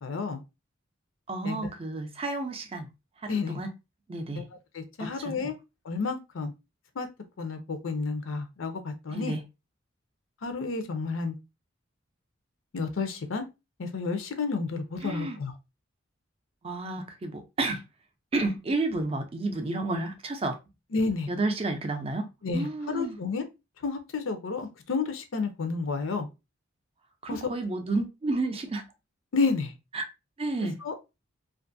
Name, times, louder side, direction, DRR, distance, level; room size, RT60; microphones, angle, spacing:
voice 1, 0.0-0.4 1.4-1.6 3.3-3.6 4.3-4.4 4.7-5.6 5.9-6.5 7.0-7.1 7.4-9.4 10.4-11.3 12.7-13.4 13.8-15.5 20.9-21.3 22.4-23.4 23.8-26.3 27.3-27.4 29.3-29.7 30.8-30.9, left 4 dB, 75° left, 0.5 m, -30 dB
voice 2, 1.3-2.9 3.2-3.7 4.1-4.4 5.0-5.5 9.1-9.4 15.0-15.4 16.6-17.8 18.3-20.6 21.3-22.3 22.5-23.2 27.2-28.8 29.9-30.0 30.4-30.8, right 2 dB, 30° right, 0.4 m, -31 dB
2.5 x 2.4 x 2.5 m
head